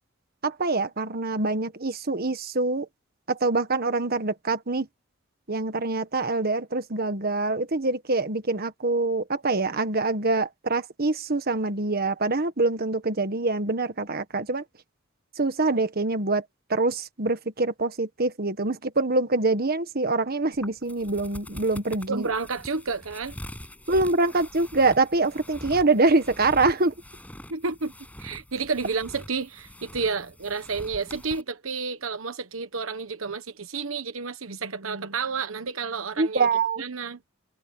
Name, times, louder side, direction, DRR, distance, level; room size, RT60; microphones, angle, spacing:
voice 1, 0.4-2.9 3.3-4.9 5.5-14.6 15.4-16.4 16.7-22.3 23.9-26.9 36.2-36.8, right 3 dB, 50° right, 1.6 m, -25 dB
sound 1, 20.5-31.4, equal, 5° left, 7.8 m, -44 dB
voice 2, 22.1-23.4 27.5-27.9 28.2-36.5 36.8-37.2, right 4 dB, 80° right, 1.2 m, -30 dB
head